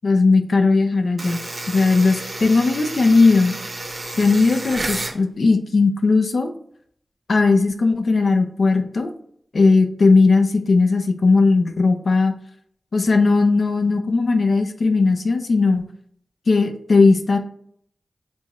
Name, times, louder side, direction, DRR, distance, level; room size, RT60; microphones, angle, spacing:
voice 1, 0.0-3.6 4.2-6.5 7.3-9.1 9.5-12.3 12.9-15.9 16.5-17.4, left 3 dB, 80° left, 5 dB, 0.6 m, -17 dB
sound 1, 1.2-5.2, right 2 dB, 65° right, 0.9 m, -31 dB
4.5 x 3.0 x 3.0 m, 0.63 s
cardioid pair, 50°, 0 cm